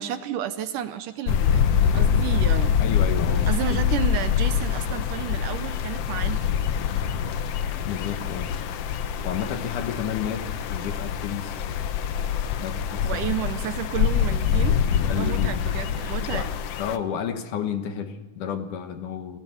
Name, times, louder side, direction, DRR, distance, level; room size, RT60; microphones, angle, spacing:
voice 1, 0.0-1.6 1.9-2.8 3.5-6.5 13.0-16.5, right 10 dB, 75° right, 11 dB, 2.2 m, -31 dB
sound 1, 1.3-17.0, left 8 dB, 85° left, 1.3 m, -25 dB
voice 2, 2.8-3.9 7.9-8.5 9.2-11.6 12.6-13.2 15.1-15.6 16.3-16.5 16.8-19.4, left 8 dB, 65° left, 7 dB, 2.7 m, -31 dB
29.5 x 17.5 x 7.2 m, 1.2 s
omnidirectional pair, 4.1 m